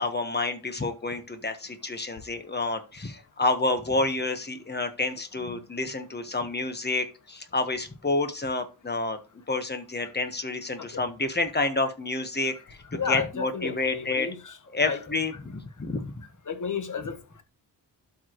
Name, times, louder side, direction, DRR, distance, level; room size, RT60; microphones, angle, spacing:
voice 1, 0.0-9.2 9.5-14.3 14.7-16.2, left 2 dB, 25° left, 1.3 m, -29 dB
voice 2, 13.0-14.6 14.9-15.0 16.5-17.4, left 6 dB, 45° left, 1.4 m, -33 dB
12.0 x 5.0 x 3.1 m
wide cardioid pair, 95°, 41 cm